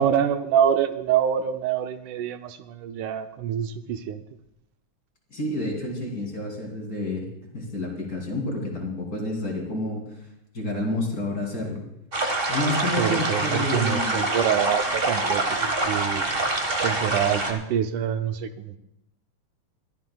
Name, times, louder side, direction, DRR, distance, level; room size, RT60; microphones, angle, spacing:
voice 1, 0.0-4.2 13.0-16.3 16.8-18.8, right 9 dB, 80° right, 8 dB, 2.1 m, -26 dB
voice 2, 5.3-7.3 7.5-10.0 10.5-11.8 12.5-14.2, left 2 dB, 30° left, -1 dB, 3.0 m, -29 dB
sound 1, 12.1-17.5, right 2 dB, 40° right, 0.7 m, -25 dB
23.5 x 13.5 x 2.3 m, 0.83 s
omnidirectional pair, 3.5 m